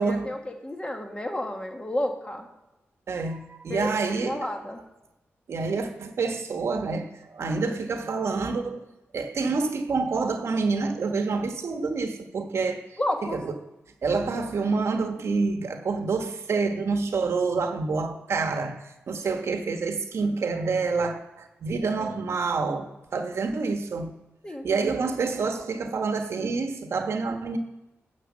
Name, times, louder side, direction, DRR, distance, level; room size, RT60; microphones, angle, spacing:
voice 1, 0.0-2.5 3.7-3.9 4.2-4.8 13.0-13.4 22.0-22.2 24.4-24.7, left 1 dB, 20° left, 4 dB, 1.5 m, -31 dB
voice 2, 3.1-4.5 5.5-8.8 9.1-13.0 13.3-13.5 14.0-24.1 24.6-27.6, right 4 dB, 70° right, 6 dB, 1.1 m, -27 dB
9.7 x 4.9 x 7.3 m, 0.98 s
cardioid pair, 80°, 5 cm